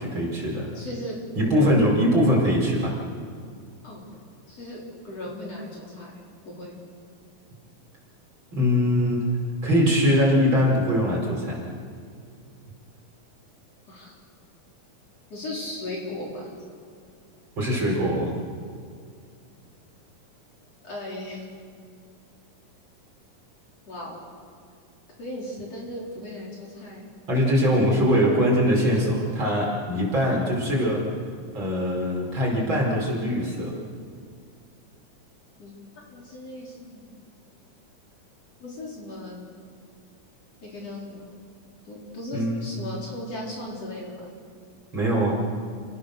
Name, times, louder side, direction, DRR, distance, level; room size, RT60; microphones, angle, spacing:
voice 1, 0.0-0.7 1.4-2.9 8.5-9.2 9.6-11.6 17.6-18.4 27.3-31.1 31.5-33.7 42.3-42.7 44.9-45.3, equal, 35° right, -3 dB, 5.5 m, -22 dB
voice 2, 0.7-1.8 3.8-4.1 4.5-4.8 5.0-6.1 6.4-6.8 13.9-14.1 15.3-16.5 20.8-21.4 23.9-24.2 25.2-27.0 35.6-35.7 36.1-37.1 38.6-39.4 40.6-41.2 41.9-44.1, left 1 dB, 45° left, -4 dB, 5.2 m, -36 dB
30.0 x 18.5 x 6.6 m, 2.2 s
omnidirectional pair, 4.1 m